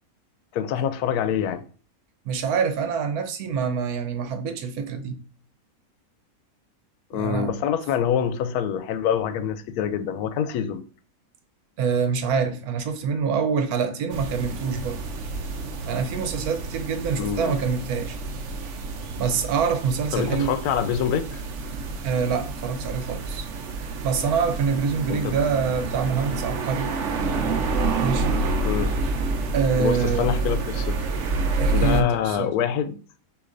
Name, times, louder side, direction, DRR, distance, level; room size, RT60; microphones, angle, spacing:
voice 1, 0.5-1.6 7.1-10.8 17.1-17.6 20.1-21.3 25.1-25.4 28.6-28.9 29.8-31.0 31.7-32.9, left 8 dB, 85° left, 1.1 m, -25 dB
voice 2, 2.2-5.2 7.1-7.5 11.8-15.0 15.9-18.2 19.2-20.6 22.0-23.5 24.0-26.9 28.0-28.4 29.5-30.3 31.6-32.5, right 6 dB, 90° right, 1.2 m, -25 dB
sound 1, 14.1-32.0, right 3 dB, 65° right, 0.9 m, -28 dB
6.4 x 2.9 x 2.5 m
omnidirectional pair, 1.6 m